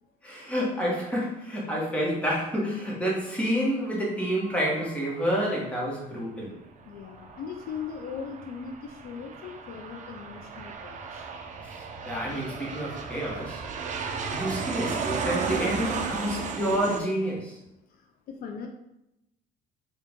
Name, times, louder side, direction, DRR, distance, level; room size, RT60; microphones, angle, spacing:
voice 1, 0.2-6.5 11.6-13.6 14.3-17.6, equal, 5° left, -4 dB, 1.3 m, -29 dB
Aircraft, 6.8-17.0, right 5 dB, 45° right, 0.5 m, -34 dB
voice 2, 6.9-11.3 17.9-18.7, left 6 dB, 60° left, 3 dB, 0.4 m, -39 dB
3.8 x 2.5 x 3.6 m, 0.86 s
cardioid pair, 110°, 17 cm